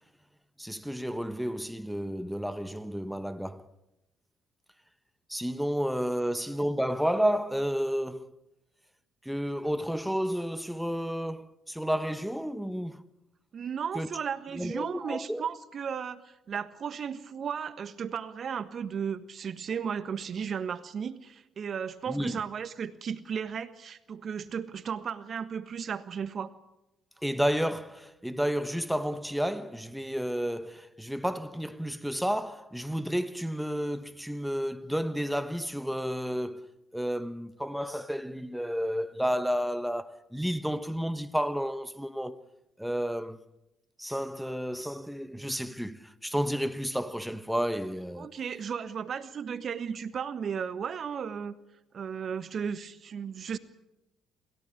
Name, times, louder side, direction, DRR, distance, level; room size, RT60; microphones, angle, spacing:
voice 1, 0.6-3.7 5.3-8.4 9.2-13.0 13.9-14.1 14.5-15.5 22.1-22.4 27.2-42.4 42.8-43.4 44.0-48.3, equal, ahead, 1.4 m, -31 dB
voice 2, 13.5-26.5 48.2-51.5 51.9-53.6, right 7 dB, 50° right, 1.4 m, -35 dB
27.5 x 16.5 x 8.7 m
hypercardioid pair, 50°, 0 cm